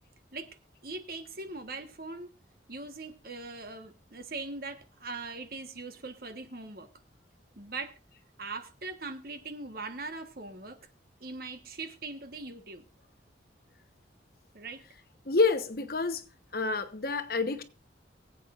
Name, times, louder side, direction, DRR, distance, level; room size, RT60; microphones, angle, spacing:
voice 1, 0.8-2.3 2.7-6.9 7.6-7.9 8.4-10.8 11.2-12.8 14.5-14.8, right 3 dB, 50° right, 1.3 m, -41 dB
voice 2, 15.3-16.2 16.5-17.6, left 3 dB, 50° left, 1.0 m, -28 dB
24.0 x 8.3 x 2.5 m
head